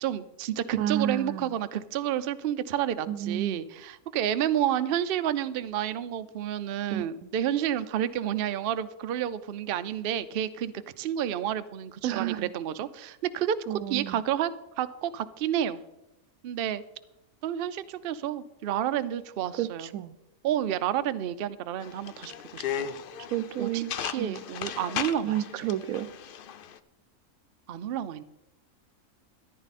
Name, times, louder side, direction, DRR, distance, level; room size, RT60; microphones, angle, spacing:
voice 1, 0.0-14.5 14.8-15.8 16.4-16.8 17.4-19.9 20.4-22.9 23.6-25.4 27.7-28.2, right 10 dB, 60° right, 12 dB, 0.6 m, -30 dB
voice 2, 0.8-1.5 3.1-3.6 6.9-7.3 12.0-12.5 13.7-14.2 19.6-20.1 23.3-23.9 24.2-24.4 25.2-26.1, right 12 dB, 90° right, 15 dB, 1.0 m, -31 dB
sound 1, 21.8-26.8, left 9 dB, 60° left, 0.5 m, -36 dB
13.5 x 10.5 x 4.1 m, 0.94 s
omnidirectional pair, 1.4 m